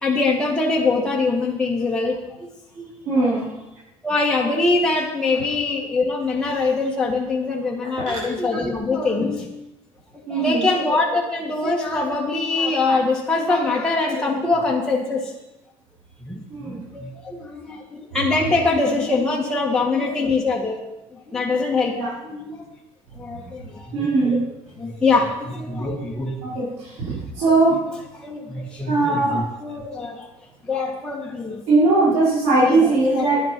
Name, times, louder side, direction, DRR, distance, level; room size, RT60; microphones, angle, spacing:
voice 1, 0.0-2.5 2.7-2.9 3.2-3.5 4.0-9.5 10.1-15.3 16.2-20.8 21.1-22.0 22.2-22.6 23.2-24.4 24.7-26.4 27.5-27.8 28.1-30.3 30.7-31.6 32.6-33.3, left 3 dB, 5° left, -4 dB, 1.9 m, -23 dB
voice 2, 3.1-3.4 10.3-10.6 16.5-16.8 22.0-22.1 23.9-24.4 26.5-27.8 28.9-29.4 31.7-33.4, right 3 dB, 85° right, -9 dB, 5.3 m, -19 dB
10.5 x 10.0 x 6.1 m, 0.95 s
cardioid pair, 125°, 11 cm